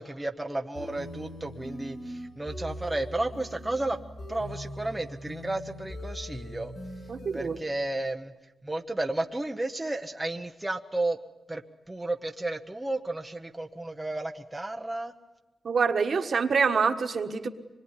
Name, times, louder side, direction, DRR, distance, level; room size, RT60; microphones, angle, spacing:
voice 1, 0.0-4.0 4.3-6.7 7.3-8.3 8.6-11.2 11.5-11.6 11.9-15.1, right 2 dB, 10° right, 3 dB, 0.8 m, -32 dB
sound 1, 0.7-7.6, equal, 55° left, 7.6 m, -41 dB
voice 2, 7.1-7.6 15.6-17.5, right 5 dB, 50° right, 7 dB, 1.5 m, -26 dB
25.5 x 22.0 x 9.8 m, 1.1 s
wide cardioid pair, 165°, 0 cm